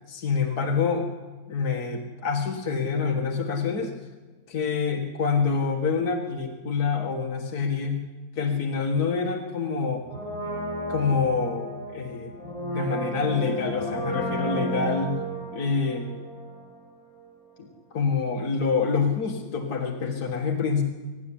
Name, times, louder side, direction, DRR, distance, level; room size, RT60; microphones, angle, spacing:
voice 1, 0.1-1.1 1.5-3.9 4.5-8.0 8.4-10.1 10.9-12.3 12.7-15.2 15.5-16.1 17.6-20.8, left 5 dB, 55° left, 1 dB, 2.2 m, -26 dB
Brass instrument, 10.1-16.9 17.2-17.3, right 1 dB, 15° right, 7.6 m, -33 dB
24.0 x 12.5 x 10.0 m, 1.3 s
omnidirectional pair, 2.0 m